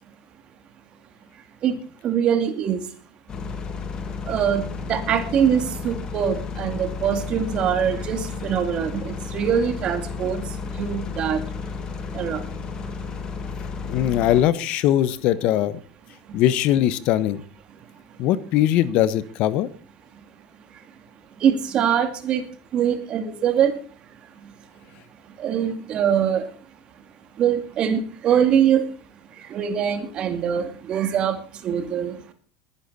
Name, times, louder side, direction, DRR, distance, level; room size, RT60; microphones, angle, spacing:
voice 1, 1.6-2.8 4.2-11.4 12.1-12.4 16.3-16.4 21.4-22.4 22.7-23.7 24.4-24.5 25.4-26.5 27.4-28.9 29.3-32.3, right 8 dB, 50° right, 8 dB, 2.5 m, -23 dB
sound 1, 3.3-14.4, left 4 dB, 35° left, 2.2 m, -32 dB
voice 2, 13.8-15.8 16.3-17.4 18.2-19.7, left 12 dB, 60° left, 16 dB, 1.1 m, -20 dB
21.0 x 10.0 x 4.2 m, 0.42 s
supercardioid pair, 95°, 2 cm